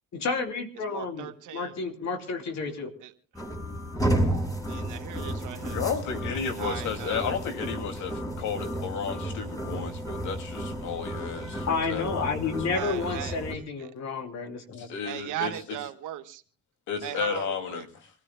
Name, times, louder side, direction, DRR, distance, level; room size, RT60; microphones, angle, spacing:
voice 1, 0.1-2.9 11.7-14.9, left 4 dB, 65° left, 5 dB, 2.9 m, -31 dB
voice 2, 0.8-1.8 3.0-3.1 4.7-5.8 6.6-7.3 12.7-13.3 13.8-13.9 15.0-16.4 17.0-17.8, right 12 dB, 90° right, 7 dB, 1.4 m, -37 dB
sound 1, 3.3-13.5, right 1 dB, 10° left, 4.7 m, -32 dB
voice 3, 5.7-12.6 14.8-15.5 16.9-18.1, left 6 dB, 85° left, 6 dB, 2.5 m, -33 dB
26.0 x 16.0 x 2.2 m, 0.39 s
cardioid pair, 90°, 30 cm